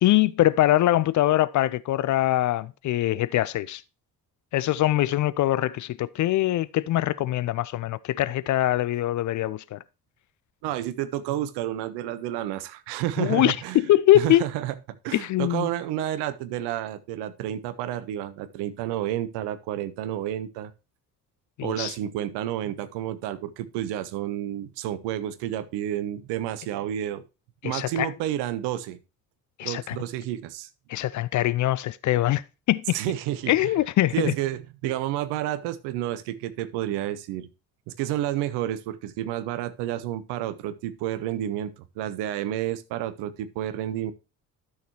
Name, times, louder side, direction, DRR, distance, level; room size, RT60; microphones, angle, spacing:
voice 1, 0.0-3.8 4.5-9.8 13.2-14.5 15.1-15.7 21.6-21.9 27.6-28.1 29.6-30.0 30.9-32.4 32.7-33.0 33.5-34.3, left 14 dB, 40° left, 0.5 m, -23 dB
voice 2, 10.6-13.8 14.1-14.7 15.0-20.7 21.6-27.2 27.6-29.0 29.6-30.7 32.9-33.7 34.1-37.5 37.9-44.1, right 12 dB, 60° right, 0.9 m, -30 dB
12.0 x 6.5 x 2.8 m
figure-of-eight pair, 50°, 46 cm